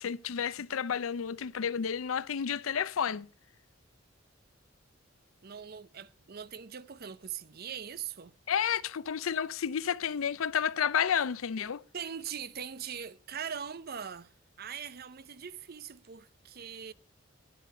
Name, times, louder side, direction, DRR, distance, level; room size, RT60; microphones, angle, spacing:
voice 1, 0.0-3.3 8.5-11.8, left 8 dB, 85° left, 0.5 m, -31 dB
voice 2, 5.4-8.3 11.9-16.9, right 7 dB, 50° right, 0.7 m, -41 dB
11.5 x 10.0 x 5.4 m
head